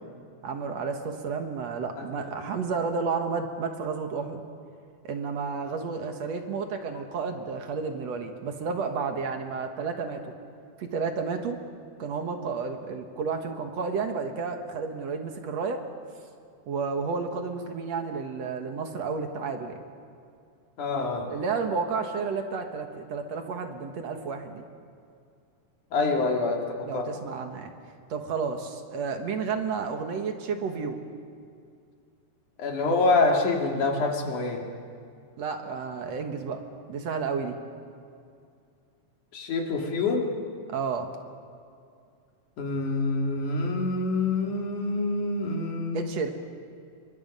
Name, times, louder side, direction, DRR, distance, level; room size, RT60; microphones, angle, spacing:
voice 1, 0.4-4.4 5.0-10.3 10.8-11.6 12.0-15.8 16.7-19.8 21.3-24.6 26.9-27.7 28.1-31.0 35.4-36.6 36.9-37.6 40.7-41.1 45.9-46.3, right 5 dB, 60° right, 5 dB, 2.5 m, -31 dB
voice 2, 20.8-21.3 25.9-27.1 32.6-34.6 39.3-40.3 42.6-46.0, left 3 dB, 75° left, 1 dB, 3.9 m, -26 dB
28.5 x 24.0 x 5.5 m, 2.4 s
omnidirectional pair, 3.5 m